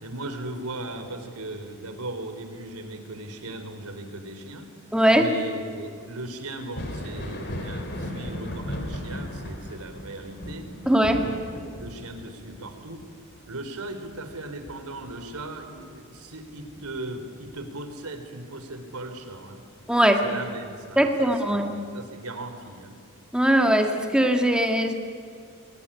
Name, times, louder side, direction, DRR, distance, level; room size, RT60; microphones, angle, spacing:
voice 1, 0.0-4.7 5.1-10.7 11.2-13.0 13.5-19.6 20.2-22.9, right 2 dB, 85° right, 8 dB, 3.2 m, -38 dB
voice 2, 4.9-5.3 10.9-11.3 19.9-20.2 21.0-21.7 23.3-24.9, right 1 dB, 5° right, 4 dB, 1.9 m, -20 dB
Thunder, 6.6-15.9 16.3-17.5 19.1-19.2 20.0-20.1, left 1 dB, 50° left, 3.4 m, -37 dB
25.5 x 21.5 x 9.8 m, 2.2 s
head